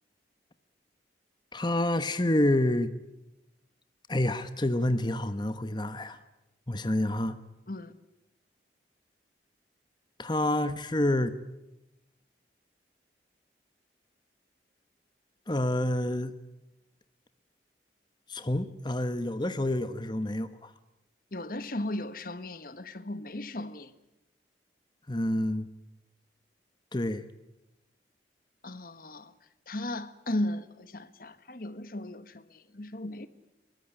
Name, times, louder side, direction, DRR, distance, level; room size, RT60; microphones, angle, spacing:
voice 1, 1.5-2.9 4.1-6.2 6.7-7.4 10.2-11.3 15.5-16.3 18.3-20.7 25.1-25.7 26.9-27.3, left 1 dB, 25° left, 1.0 m, -28 dB
voice 2, 21.3-23.9 28.6-29.3 29.7-33.3, left 1 dB, 50° left, 1.4 m, -36 dB
23.0 x 21.0 x 9.8 m
head